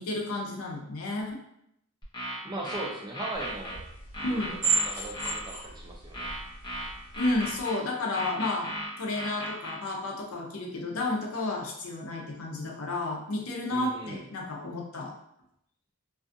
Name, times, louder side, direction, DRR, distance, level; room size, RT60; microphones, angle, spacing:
voice 1, 0.0-1.4 4.2-4.5 7.2-8.7 9.0-15.1, left 2 dB, 75° left, 0 dB, 0.6 m, -32 dB
sound 1, 2.0-3.8 4.1-5.4 6.1-7.8 8.1-9.8, equal, 20° left, 0.6 m, -36 dB
voice 2, 2.4-3.8 4.3-4.6 4.8-6.3 13.7-14.2, right 2 dB, 20° right, -1 dB, 0.3 m, -38 dB
sound 2, 3.3-7.6, right 4 dB, 40° right, 1.3 m, -34 dB
2.5 x 2.3 x 2.5 m, 0.77 s
head